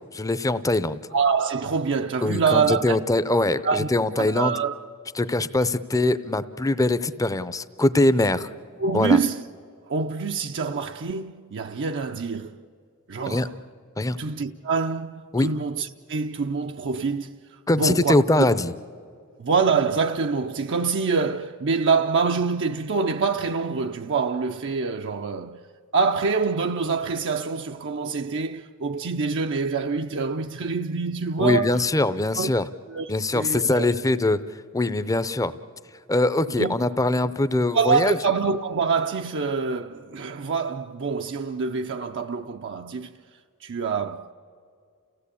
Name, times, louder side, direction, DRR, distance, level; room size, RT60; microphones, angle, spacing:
voice 1, 0.1-1.0 2.2-4.6 5.2-8.5 8.9-9.2 13.3-13.5 14.0-14.2 15.3-15.5 17.7-18.7 31.4-32.6 33.1-34.4 34.7-35.5 36.1-38.2, left 2 dB, 15° left, 0.6 m, -22 dB
voice 2, 1.1-3.0 3.6-3.9 4.2-4.8 8.8-9.4 9.9-12.6 13.1-13.5 14.2-17.4 17.8-18.5 19.4-25.6 25.9-31.9 32.4-32.5 32.9-33.9 36.6-36.8 37.7-43.2 43.6-44.3, right 5 dB, 55° right, 0.6 m, -25 dB
29.5 x 16.5 x 8.4 m
head